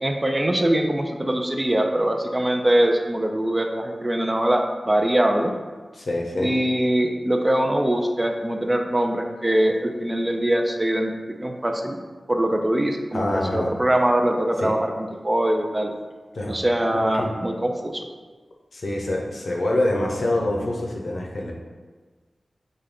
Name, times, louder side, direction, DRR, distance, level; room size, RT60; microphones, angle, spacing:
voice 1, 0.0-5.5 6.4-11.1 11.4-12.0 12.3-15.9 16.5-18.1, right 1 dB, 25° right, 3 dB, 0.4 m, -22 dB
voice 2, 6.0-6.5 13.1-13.7 14.6-14.7 16.3-16.6 17.1-17.3 18.7-21.5, left 1 dB, 70° left, -1 dB, 0.7 m, -25 dB
5.0 x 2.2 x 3.6 m, 1.4 s
wide cardioid pair, 60°, 0 cm